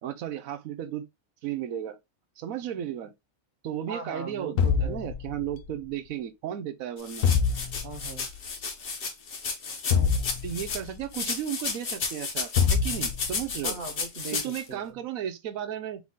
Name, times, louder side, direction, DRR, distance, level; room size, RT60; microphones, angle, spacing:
voice 1, 0.0-1.0 1.4-2.0 2.4-3.1 3.6-4.5 4.8-7.2 10.4-13.8 14.3-16.0, right 10 dB, 85° right, 1.1 m, -34 dB
voice 2, 3.9-5.1 7.8-8.3 9.9-10.2 13.6-15.0, right 4 dB, 55° right, 0.9 m, -39 dB
sound 1, 4.6-5.7 7.2-8.2 9.9-11.0 12.6-13.5, left 6 dB, 75° left, 0.9 m, -25 dB
sound 2, 7.0-10.8 11.1-14.6, left 5 dB, 50° left, 1.0 m, -33 dB
4.0 x 3.1 x 3.5 m
omnidirectional pair, 1.4 m